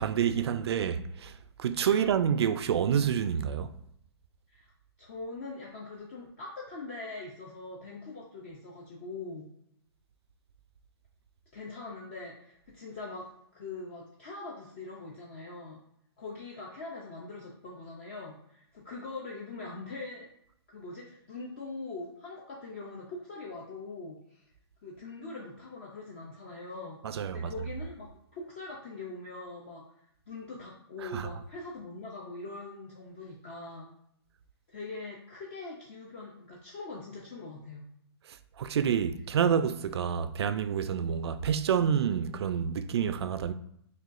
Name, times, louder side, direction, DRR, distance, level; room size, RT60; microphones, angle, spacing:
voice 1, 0.0-3.7 27.0-27.5 31.0-31.3 38.6-43.5, right 8 dB, 70° right, 0.4 m, -28 dB
voice 2, 5.0-9.5 11.5-15.8 16.2-20.3 20.7-24.4 24.8-29.9 30.3-33.9 34.7-37.9, left 3 dB, 25° left, 0.4 m, -42 dB
6.3 x 2.3 x 2.5 m
hypercardioid pair, 175°, 14 cm